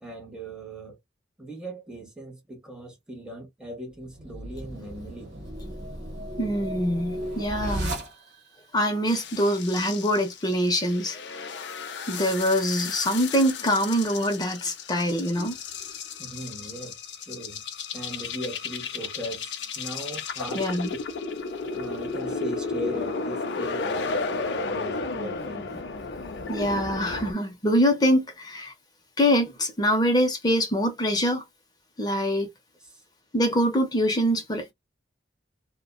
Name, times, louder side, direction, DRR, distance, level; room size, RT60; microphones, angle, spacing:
voice 1, 0.0-1.0 1.4-5.3 16.2-17.6 17.9-20.8 21.7-25.8, right 1 dB, 5° right, 0.9 m, -39 dB
sound 1, 4.0-8.6, right 1 dB, 70° right, 1.0 m, -35 dB
voice 2, 6.4-7.9 8.7-11.2 12.1-15.6 20.5-20.9 26.5-28.7 29.2-31.4 32.0-32.5 33.3-34.7, equal, 20° left, 0.6 m, -24 dB
sound 2, 9.1-27.3, left 4 dB, 70° left, 0.5 m, -34 dB
2.6 x 2.2 x 2.2 m
head